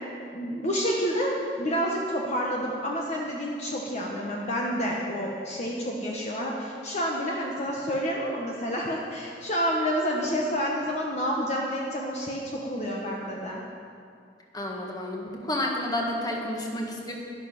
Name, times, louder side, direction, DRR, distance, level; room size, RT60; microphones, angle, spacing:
voice 1, 0.3-13.6, equal, 40° left, -2 dB, 1.3 m, -29 dB
voice 2, 14.5-17.1, left 1 dB, 20° left, 0 dB, 1.8 m, -30 dB
12.5 x 12.0 x 6.0 m, 2.3 s
head